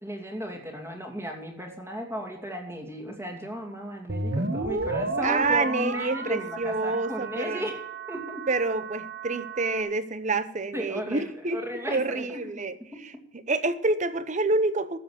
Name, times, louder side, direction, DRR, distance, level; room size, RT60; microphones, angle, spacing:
voice 1, 0.0-7.8 8.1-8.5 10.7-12.5 12.9-13.0, equal, 15° right, 3 dB, 2.5 m, -35 dB
sound 1, 4.1-9.8, right 3 dB, 55° right, 1.2 m, -32 dB
voice 2, 5.2-7.6 8.5-11.6 11.9-12.8 13.0-13.1 13.5-15.0, right 3 dB, 40° right, 12 dB, 0.9 m, -27 dB
13.5 x 7.7 x 7.9 m, 0.76 s
head